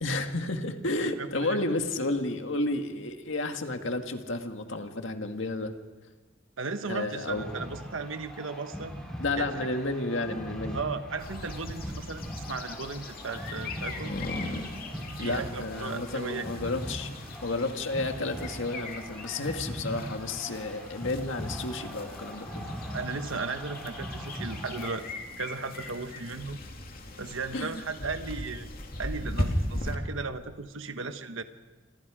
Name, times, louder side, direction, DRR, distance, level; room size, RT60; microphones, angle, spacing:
voice 1, 0.0-5.7 6.9-7.4 9.2-10.8 15.2-17.1 17.4-22.6 27.5-27.7, left 2 dB, 70° left, 6 dB, 1.9 m, -31 dB
voice 2, 1.0-1.6 6.6-8.9 9.3-9.7 10.7-14.1 15.2-16.7 22.9-25.1 25.4-26.6 27.2-28.7 29.0-31.4, right 4 dB, 80° right, 9 dB, 1.2 m, -36 dB
sound 1, 7.3-24.9, equal, 5° left, 5.9 m, -40 dB
sound 2, 11.2-30.0, left 1 dB, 50° left, 2.7 m, -38 dB
28.0 x 26.5 x 5.0 m, 1.3 s
head